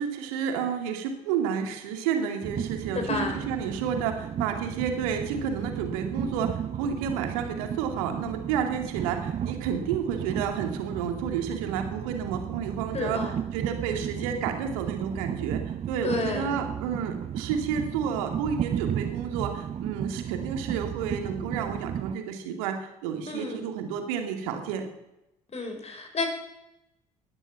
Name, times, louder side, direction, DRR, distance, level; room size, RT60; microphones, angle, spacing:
voice 1, 0.0-13.2 13.5-24.9, right 7 dB, 65° right, 5 dB, 2.5 m, -31 dB
Train, 2.4-22.2, right 9 dB, 35° right, 0.6 m, -34 dB
voice 2, 2.9-3.4 12.9-13.4 16.0-16.5 23.3-23.6 25.5-26.3, left 3 dB, 35° left, 5 dB, 4.8 m, -30 dB
19.0 x 11.0 x 5.9 m, 0.89 s
figure-of-eight pair, 50°, 19 cm